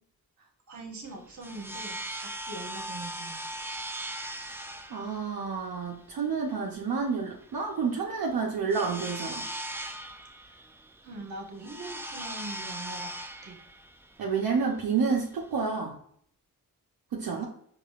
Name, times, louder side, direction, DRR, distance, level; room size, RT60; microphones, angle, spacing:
voice 1, 0.7-3.4 10.4-10.6 11.0-13.1 13.4-13.6, right 2 dB, 55° right, 1 dB, 1.1 m, -42 dB
sound 1, 1.0-15.6, right 1 dB, 5° right, 0.3 m, -40 dB
voice 2, 4.9-9.5 14.2-15.9 17.1-17.4, right 5 dB, 80° right, -2 dB, 0.7 m, -29 dB
4.8 x 2.5 x 2.3 m, 0.64 s
cardioid pair, 65°, 35 cm